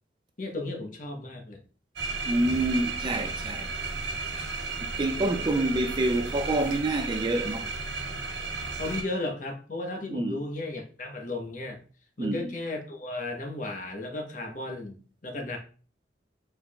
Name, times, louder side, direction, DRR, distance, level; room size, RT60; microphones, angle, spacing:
voice 1, 0.4-1.6 8.8-11.8 12.2-15.0 15.2-15.6, left 2 dB, 45° left, 0.9 m, -34 dB
sound 1, 2.0-9.0, right 3 dB, 80° right, 1.0 m, -34 dB
voice 2, 2.3-3.7 5.0-7.7 10.1-10.4 12.2-12.5, right 2 dB, 25° right, 0.4 m, -27 dB
4.6 x 4.5 x 2.3 m
head